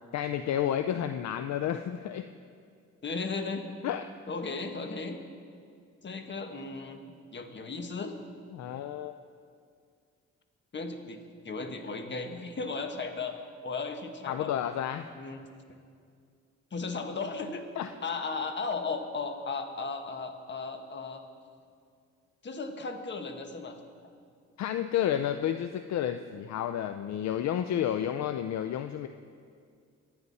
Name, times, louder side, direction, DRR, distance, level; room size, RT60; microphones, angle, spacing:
voice 1, 0.1-2.3 3.8-4.0 8.5-9.1 14.3-15.1 17.8-17.9 24.6-29.1, left 10 dB, 65° left, 9 dB, 0.6 m, -31 dB
voice 2, 3.0-3.6 4.3-5.2 6.0-7.0 7.3-8.1 10.7-11.2 11.4-13.3 13.6-14.5 15.1-15.5 16.7-17.6 18.0-21.2 22.4-23.8, left 4 dB, 35° left, 6 dB, 1.5 m, -35 dB
25.5 x 9.6 x 4.2 m, 2.2 s
cardioid pair, 90°, 30 cm